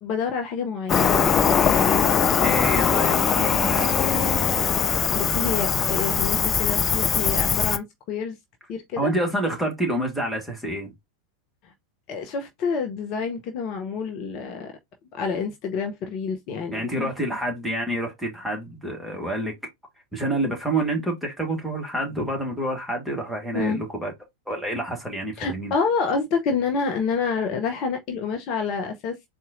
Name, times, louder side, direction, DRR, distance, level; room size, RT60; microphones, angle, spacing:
voice 1, 0.0-1.2 1.7-2.1 5.1-8.4 8.7-9.1 11.6-11.7 12.1-14.7 15.1-17.1 23.5-23.8 25.4-29.2, left 5 dB, 40° left, 0.7 m, -28 dB
Cricket, 0.9-7.8, left 7 dB, 25° left, 0.4 m, -21 dB
voice 2, 2.4-4.5 9.0-10.9 16.7-19.5 20.1-24.1 24.5-25.7, right 1 dB, ahead, 1.7 m, -28 dB
4.1 x 2.5 x 3.7 m
figure-of-eight pair, 90°, 0 cm